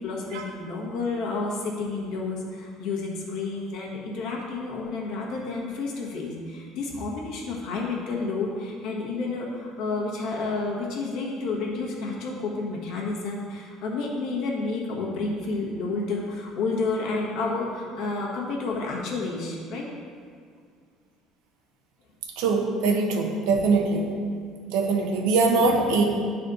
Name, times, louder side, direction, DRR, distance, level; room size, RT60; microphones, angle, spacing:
voice 1, 0.0-19.9, left 3 dB, 60° left, -3 dB, 1.4 m, -30 dB
voice 2, 22.4-24.1 24.7-26.0, right 3 dB, 85° right, 2 dB, 0.9 m, -22 dB
9.6 x 4.2 x 4.0 m, 2.1 s
cardioid pair, 165°, 0 cm